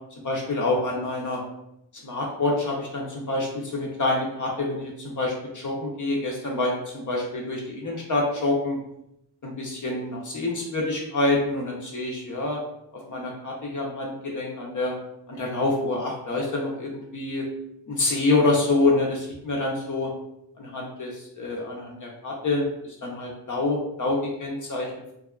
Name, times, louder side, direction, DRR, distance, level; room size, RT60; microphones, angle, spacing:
voice 1, 0.2-1.4 2.0-8.8 9.4-12.6 13.1-15.0 15.3-17.4 17.9-20.1 20.6-22.7 23.0-24.9, left 2 dB, 50° left, -1 dB, 0.6 m, -27 dB
2.7 x 2.3 x 2.2 m, 0.80 s
wide cardioid pair, 120°, 41 cm